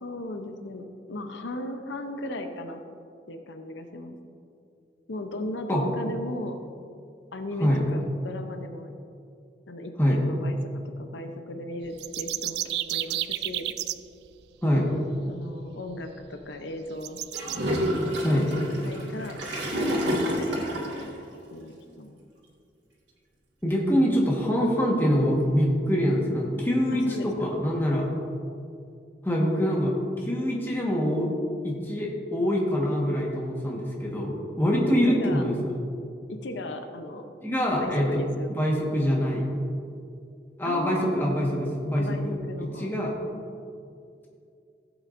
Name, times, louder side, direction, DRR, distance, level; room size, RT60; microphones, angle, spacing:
voice 1, 0.0-2.8 3.3-4.2 5.1-6.6 7.3-8.9 9.7-10.6 11.0-12.6 12.9-13.7 15.3-17.2 18.0-19.4 19.7-21.1 21.5-22.2 26.9-27.3 35.1-35.4 36.3-37.2 37.8-38.7 40.6-41.4 41.9-42.9, left 1 dB, 90° left, 6 dB, 0.7 m, -37 dB
sound 1, 11.9-13.9 15.7-15.8 16.2-16.3 17.0-17.6, right 14 dB, 65° right, 0.3 m, -31 dB
Gurgling / Toilet flush, 17.3-21.1, equal, 85° right, 1.9 m, -28 dB
voice 2, 23.6-28.1 29.2-31.3 31.6-35.8 37.4-38.2 38.5-39.5 40.6-43.1, equal, 10° left, -3 dB, 1.4 m, -25 dB
15.5 x 8.1 x 2.6 m, 2.4 s
head